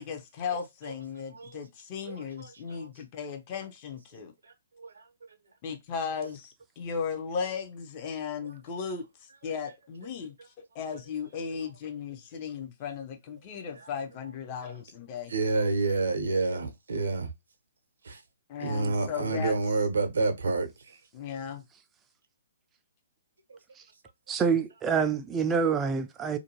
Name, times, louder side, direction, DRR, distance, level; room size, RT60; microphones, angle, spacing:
voice 1, 0.0-4.3 5.6-9.0 9.4-10.3 10.7-15.3 18.5-19.5 21.1-21.6, left 6 dB, 35° left, 0.6 m, -36 dB
voice 2, 2.0-2.8 4.8-4.9 13.7-13.9 15.3-17.3 18.1-18.2 18.6-20.7, right 3 dB, 70° right, 0.6 m, -28 dB
voice 3, 24.3-26.4, right 6 dB, 15° right, 0.3 m, -26 dB
2.5 x 2.2 x 2.9 m
figure-of-eight pair, 125°, 0 cm